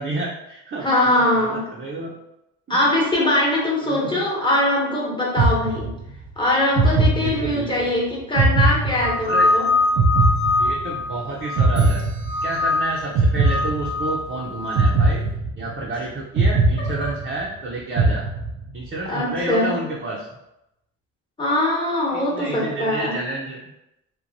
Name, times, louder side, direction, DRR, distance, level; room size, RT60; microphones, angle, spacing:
voice 1, 0.0-0.9 1.2-2.1 2.7-2.8 3.9-4.2 7.2-7.9 9.3-9.5 10.6-12.0 12.4-15.3 15.6-18.3 18.7-20.3 22.1-23.6, right 2 dB, 35° right, -4 dB, 0.5 m, -30 dB
voice 2, 0.8-1.6 2.7-5.9 6.4-9.7 17.0-17.1 19.1-19.7 21.4-23.2, left 1 dB, 15° left, -4 dB, 1.0 m, -21 dB
sound 1, 5.4-6.2 6.7-7.8 8.4-9.5 10.0-11.1 11.6-12.7 13.1-14.2 14.7-15.9 16.4-17.5 18.0-18.8, right 2 dB, 90° right, 0.5 m, -20 dB
sound 2, 9.0-11.9 12.3-13.0 13.4-14.9, left 2 dB, 80° left, 0.5 m, -23 dB
2.9 x 2.1 x 2.6 m, 0.87 s
cardioid pair, 90°, 30 cm